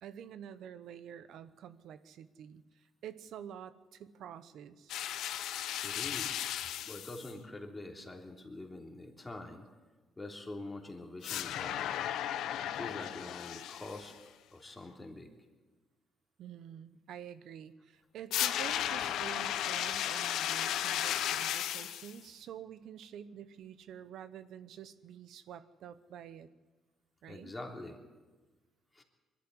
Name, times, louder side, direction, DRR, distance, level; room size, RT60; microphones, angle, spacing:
voice 1, 0.0-4.9 16.4-26.5 27.2-27.5, right 9 dB, 75° right, 14 dB, 1.0 m, -48 dB
sound 1, 4.9-7.3 11.2-14.1 18.3-22.1, left 11 dB, 85° left, 0.9 m, -35 dB
voice 2, 5.8-6.5 6.8-9.7 10.2-11.9 12.7-14.1 14.5-15.3 27.3-28.0 28.9-29.0, left 2 dB, 15° left, 2 dB, 3.3 m, -45 dB
21.5 x 12.5 x 9.8 m, 1.3 s
cardioid pair, 90°, 0 cm